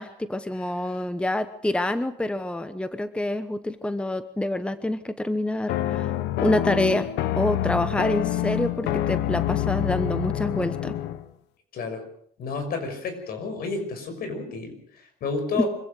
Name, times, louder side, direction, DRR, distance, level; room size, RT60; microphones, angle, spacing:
voice 1, 0.0-6.1 6.4-7.1 7.4-11.0 15.5-15.6, left 1 dB, 5° left, 12 dB, 1.0 m, -27 dB
voice 2, 0.5-1.0 11.7-12.0 12.4-15.7, left 4 dB, 65° left, 7 dB, 6.1 m, -31 dB
evil entrance chords (good), 5.7-11.3, left 12 dB, 85° left, 1.2 m, -27 dB
25.0 x 16.0 x 6.6 m, 0.63 s
cardioid pair, 110°, 17 cm